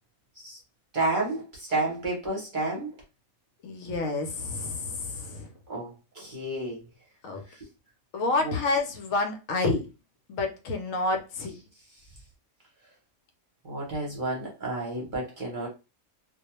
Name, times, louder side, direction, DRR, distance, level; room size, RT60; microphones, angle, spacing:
voice 1, 0.9-3.0 5.7-6.8 7.5-7.6 8.4-8.5 13.6-15.7, right 2 dB, 45° right, 0.8 m, -31 dB
voice 2, 3.6-5.5 7.2-7.4 8.1-9.8 10.3-11.5, left 3 dB, 75° left, 0.9 m, -29 dB
2.3 x 2.1 x 2.9 m
omnidirectional pair, 1.5 m